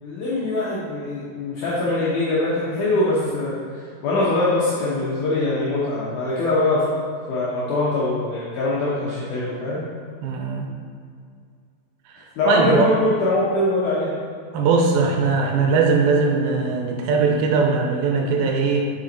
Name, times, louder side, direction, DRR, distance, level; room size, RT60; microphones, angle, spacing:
voice 1, 0.0-6.9 7.3-9.8 12.4-14.1, left 2 dB, 70° left, -7 dB, 2.3 m, -23 dB
voice 2, 10.2-10.7 12.1-12.9 14.5-18.9, right 4 dB, 85° right, 2 dB, 2.7 m, -20 dB
7.1 x 6.0 x 4.1 m, 2.2 s
omnidirectional pair, 4.2 m